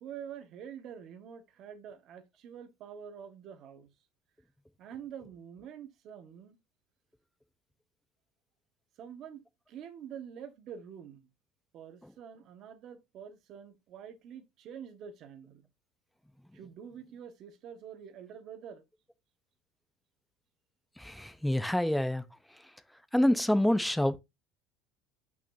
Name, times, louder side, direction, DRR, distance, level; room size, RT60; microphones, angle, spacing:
voice 1, 0.0-3.9 4.8-6.6 9.0-9.4 9.7-11.3 11.7-15.7 16.5-18.8, right 8 dB, 40° right, 1.5 m, -46 dB
voice 2, 21.0-22.2 23.1-24.2, left 1 dB, ahead, 0.6 m, -27 dB
8.3 x 6.1 x 2.7 m
cardioid pair, 170°, 0 cm